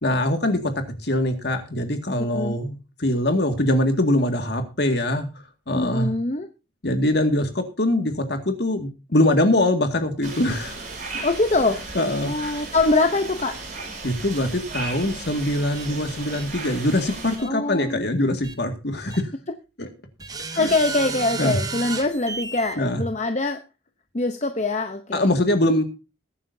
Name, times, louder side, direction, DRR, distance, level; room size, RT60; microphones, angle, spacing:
voice 1, 0.0-0.7 1.0-5.3 5.7-6.1 6.8-10.8 12.0-12.3 14.0-19.3 19.8-19.9 20.5-20.7 21.4-21.6 22.8-23.0 25.1-25.8, left 1 dB, 55° left, 6 dB, 2.1 m, -23 dB
voice 2, 2.2-2.6 5.7-6.5 11.2-11.8 12.2-13.6 17.4-18.0 20.6-23.6 24.1-25.4, left 2 dB, 35° left, 6 dB, 0.8 m, -23 dB
sound 1, 10.2-17.4, right 3 dB, 40° right, 5.5 m, -35 dB
sound 2, 15.7-15.9 16.3-16.4 17.4-17.5 18.4-18.5 19.1-19.2 20.2-22.7, right 4 dB, 20° right, 1.0 m, -32 dB
21.5 x 9.2 x 2.7 m, 0.30 s
head